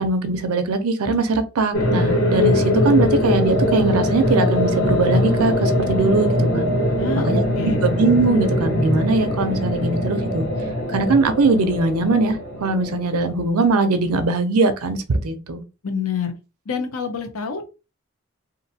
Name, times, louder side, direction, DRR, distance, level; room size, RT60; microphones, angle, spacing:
voice 1, 0.0-6.7 7.3-7.4 7.8-10.5 10.9-15.6, right 3 dB, 85° right, 0.5 m, -21 dB
sound 1, 1.7-13.8, left 1 dB, 50° left, 1.0 m, -21 dB
voice 2, 7.0-7.8 15.8-16.3 16.7-17.7, left 5 dB, 75° left, 0.7 m, -27 dB
2.9 x 2.5 x 2.7 m
head